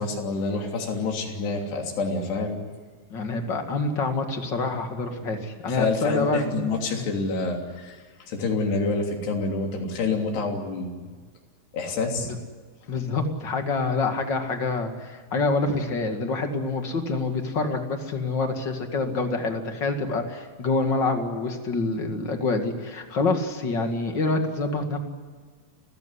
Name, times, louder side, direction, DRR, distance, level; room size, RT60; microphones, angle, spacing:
voice 1, 0.0-2.6 5.7-10.9 11.7-12.3, left 3 dB, 75° left, 2 dB, 5.2 m, -27 dB
voice 2, 3.1-6.6 6.9-7.0 12.3-12.4 12.9-25.0, left 3 dB, 35° left, 5 dB, 2.0 m, -26 dB
30.0 x 16.0 x 9.9 m, 1.5 s
omnidirectional pair, 4.8 m